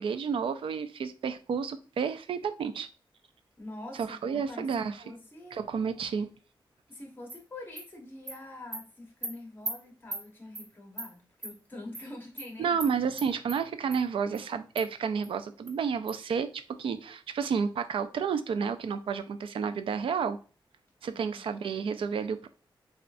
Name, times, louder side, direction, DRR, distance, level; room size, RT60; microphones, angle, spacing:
voice 1, 0.0-2.9 3.9-5.0 5.5-6.3 12.6-20.4 21.0-22.5, right 6 dB, 90° right, 10 dB, 0.4 m, -31 dB
voice 2, 3.6-5.6 6.9-12.8 21.1-21.5, left 2 dB, 25° left, 1 dB, 1.3 m, -45 dB
Animal, 7.3-7.4 7.8-7.9 8.3-8.4 8.7-8.8 9.2-9.3 9.6-9.7 10.1-10.2 10.5-10.7 11.0-11.1 11.4-11.5 11.9-12.1 12.4-12.5 12.8-12.9 13.2-13.6 13.9-14.0 14.3-14.4 14.8-14.9 15.2-15.3 15.7-15.8 16.1-16.2, right 1 dB, 40° right, 1.2 m, -37 dB
6.5 x 2.5 x 2.5 m, 0.37 s
wide cardioid pair, 135°, 9 cm